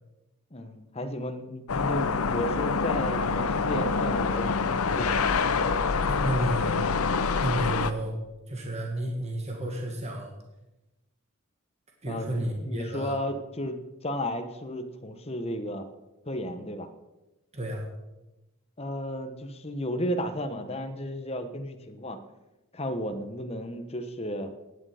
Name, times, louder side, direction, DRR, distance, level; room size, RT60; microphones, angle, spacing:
voice 1, 0.5-4.6 4.9-5.3 12.1-15.9 16.3-16.9 18.8-22.2 22.7-24.5, equal, 30° left, 7 dB, 1.1 m, -33 dB
sound 1, 1.7-7.9, left 4 dB, 80° left, 0.7 m, -26 dB
voice 2, 6.0-6.9 7.1-8.2 8.5-10.3 12.0-13.2 17.5-17.9, right 1 dB, 30° right, 1 dB, 1.9 m, -31 dB
15.5 x 10.0 x 5.0 m, 1.0 s
head